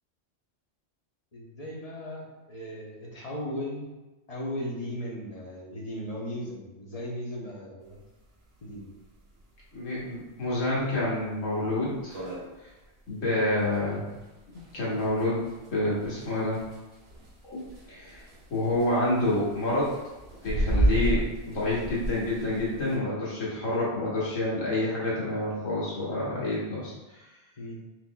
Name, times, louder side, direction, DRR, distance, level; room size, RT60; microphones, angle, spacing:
voice 1, 1.3-3.9 4.3-8.0 8.6-8.9 27.6-27.8, left 1 dB, 35° left, -3 dB, 0.8 m, -37 dB
sound 1, 7.9-8.0 8.3-8.4 8.7-8.8 9.4-9.6 10.1-10.2 10.7-10.8 11.1-11.2 11.7-11.8 11.9-23.0, right 1 dB, 55° right, 1.1 m, -32 dB
voice 2, 9.7-12.3 13.1-14.0 14.7-16.6 17.4-17.6 17.9-18.2 18.5-19.9 20.4-26.9, left 1 dB, 90° left, -7 dB, 1.8 m, -28 dB
4.4 x 4.1 x 2.3 m, 1.1 s
omnidirectional pair, 1.3 m